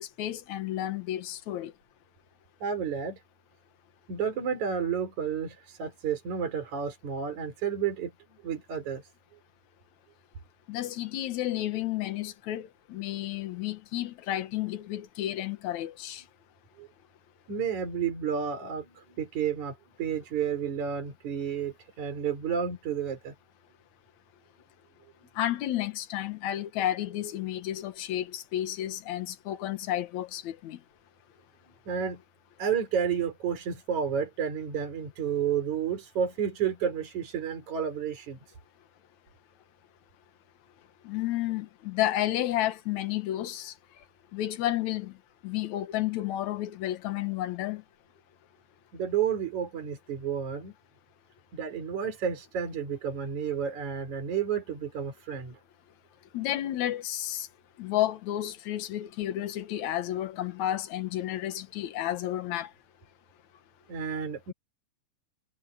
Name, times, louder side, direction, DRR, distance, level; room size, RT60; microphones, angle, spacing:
voice 1, 0.0-1.7 10.7-16.2 25.4-30.8 41.0-43.7 44.3-45.1 45.4-47.8 56.3-57.5 57.8-62.7, left 13 dB, 70° left, 2.5 m, -31 dB
voice 2, 2.6-3.2 4.1-8.1 8.4-9.0 16.8-16.9 17.5-23.3 31.9-32.2 32.6-38.4 48.9-50.7 51.5-55.6 63.9-64.5, right 7 dB, 65° right, 5.4 m, -31 dB
omnidirectional pair, 3.6 m